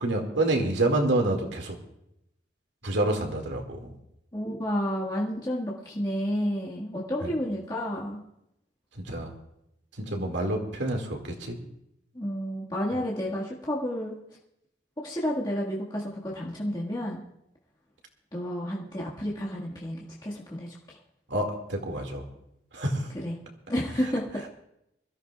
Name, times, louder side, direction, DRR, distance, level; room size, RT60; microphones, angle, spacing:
voice 1, 0.0-1.8 2.8-3.9 7.2-7.3 9.0-9.3 10.0-11.6 21.3-22.3 22.7-23.1, right 1 dB, 80° right, 3 dB, 2.1 m, -28 dB
voice 2, 4.3-8.2 12.1-14.2 15.0-17.2 18.3-21.0 23.2-23.3 23.7-24.5, equal, 25° left, -6 dB, 1.7 m, -31 dB
24.0 x 14.0 x 2.4 m, 0.81 s
head